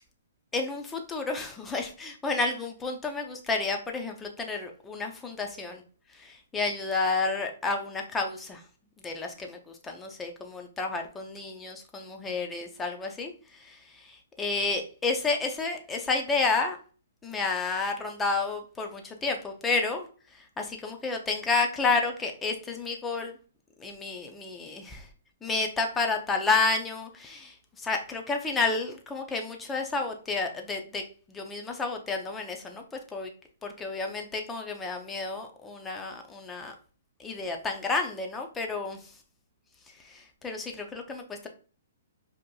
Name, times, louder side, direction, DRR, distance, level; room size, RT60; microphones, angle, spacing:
voice 1, 0.5-5.8 6.1-8.6 9.0-16.8 17.2-20.1 20.3-23.3 23.8-25.1 25.4-31.0 31.3-32.8 33.1-33.3 33.6-36.7 37.2-39.1 40.0-41.5, left 3 dB, 10° left, 3 dB, 0.5 m, -31 dB
4.9 x 2.9 x 2.3 m, 0.38 s
hypercardioid pair, 155°, 0 cm